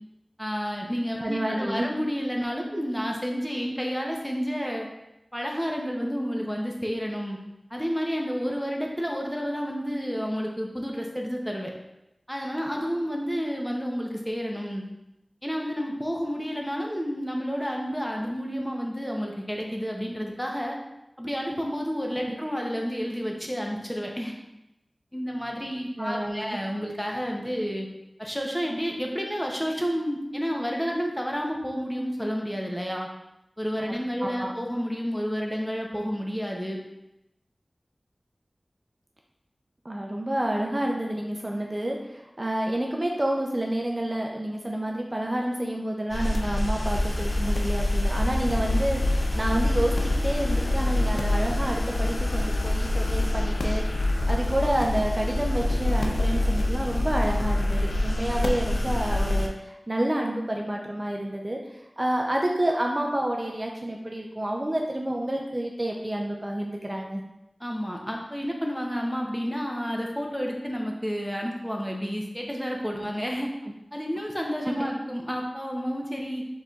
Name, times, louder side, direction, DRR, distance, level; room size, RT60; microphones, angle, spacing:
voice 1, 0.4-4.9 5.3-7.4 7.7-11.7 12.3-14.8 15.4-20.8 21.2-24.4 25.1-27.9 28.2-33.1 33.6-36.8 67.6-73.5 73.9-76.5, equal, 5° left, 0 dB, 0.7 m, -30 dB
voice 2, 1.2-1.9 22.3-22.4 26.0-26.6 33.9-34.5 39.8-61.6 62.0-67.2 74.6-74.9, right 1 dB, 30° right, 0 dB, 0.5 m, -29 dB
sound 1, 46.1-59.5, left 1 dB, 75° left, 0.4 m, -25 dB
4.7 x 3.9 x 2.4 m, 0.89 s
wide cardioid pair, 65°, 0 cm